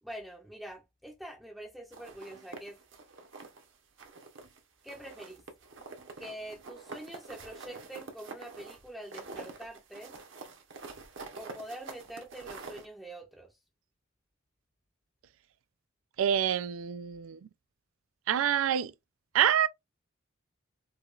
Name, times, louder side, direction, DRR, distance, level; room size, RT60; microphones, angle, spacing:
voice 1, 0.0-2.8 4.8-5.4 6.2-10.2 11.4-13.6, right 1 dB, ahead, 0.5 m, -45 dB
sound 1, 1.9-3.7 4.0-4.6 4.9-12.9, right 3 dB, 65° right, 0.9 m, -46 dB
voice 2, 16.2-17.4 18.3-18.9 19.3-19.7, right 9 dB, 80° right, 0.3 m, -26 dB
4.7 x 2.3 x 2.4 m
head